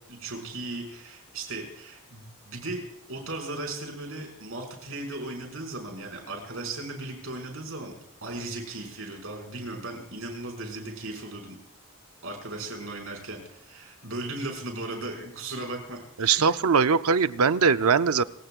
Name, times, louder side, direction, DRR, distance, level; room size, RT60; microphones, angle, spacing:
voice 1, 0.1-2.8 3.1-7.9 8.2-11.6 12.2-16.5, right 2 dB, 70° right, 2 dB, 5.7 m, -37 dB
voice 2, 16.2-18.2, right 5 dB, 90° right, 12 dB, 0.6 m, -21 dB
29.5 x 17.0 x 2.5 m, 0.78 s
head